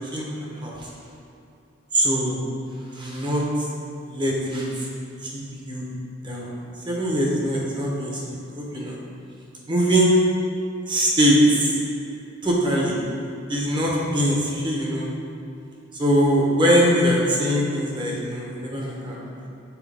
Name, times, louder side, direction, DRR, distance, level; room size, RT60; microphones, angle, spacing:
voice 1, 0.6-0.9 1.9-2.4 2.9-3.7 4.1-4.9 5.2-5.9 6.2-6.5 6.9-9.0 9.7-10.2 10.9-11.7 12.4-13.0 13.5-15.1 15.9-19.3, equal, 25° right, -3 dB, 1.0 m, -22 dB
7.2 x 4.7 x 3.4 m, 2.7 s
head